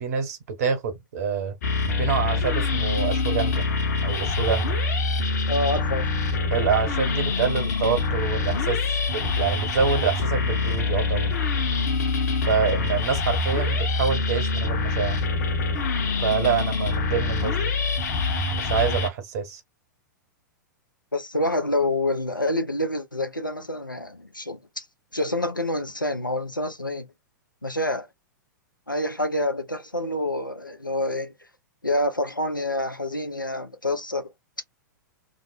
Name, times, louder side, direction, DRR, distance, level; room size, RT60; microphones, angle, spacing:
voice 1, 0.0-1.5 2.0-3.6 4.0-4.8 6.5-11.3 12.4-15.2 16.2-17.7 18.5-19.6, right 6 dB, 50° right, 1.0 m, -26 dB
sound 1, 1.6-19.1, left 3 dB, 55° left, 0.9 m, -25 dB
voice 2, 5.5-6.1 21.1-24.9 25.1-27.1 27.6-28.1 28.9-31.3 31.8-34.3, left 1 dB, 90° left, 0.6 m, -27 dB
2.6 x 2.0 x 2.5 m
figure-of-eight pair, 100°, 10 cm